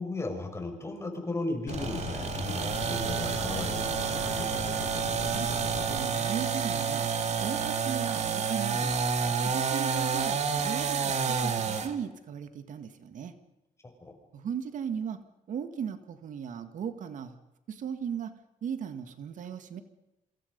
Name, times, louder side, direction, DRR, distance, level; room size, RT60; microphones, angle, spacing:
voice 1, 0.0-4.5 13.8-14.1, left 2 dB, 20° left, 4 dB, 6.4 m, -36 dB
sound 1, 1.7-6.1, left 6 dB, 90° left, 5.9 m, -39 dB
sound 2, 1.7-11.9, right 6 dB, 55° right, 2.5 m, -29 dB
voice 2, 5.9-7.1 7.4-9.0 9.3-13.3 14.3-15.2 15.5-17.4 17.7-18.3 18.6-19.8, right 7 dB, 75° right, 9 dB, 2.0 m, -37 dB
27.5 x 26.5 x 5.5 m, 0.94 s
cardioid pair, 105°, 13 cm